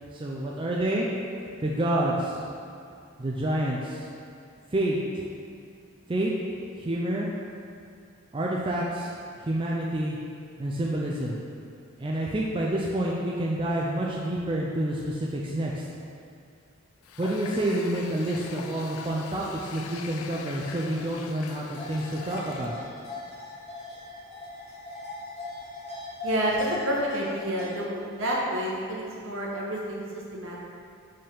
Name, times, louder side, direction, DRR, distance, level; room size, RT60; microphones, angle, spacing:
voice 1, 0.1-1.1 1.6-2.4 3.2-4.1 4.7-5.3 6.1-6.3 6.8-7.3 8.3-10.2 10.6-11.4 12.0-15.8 17.2-22.8, right 1 dB, 25° right, -4 dB, 0.4 m, -28 dB
Water tap faucet, 17.0-22.8, left 6 dB, 85° left, 0.4 m, -42 dB
sound 1, 21.7-27.7, left 2 dB, 30° left, 1.5 m, -40 dB
voice 2, 26.2-30.6, equal, 70° right, -3 dB, 1.1 m, -29 dB
5.5 x 3.5 x 5.5 m, 2.3 s
head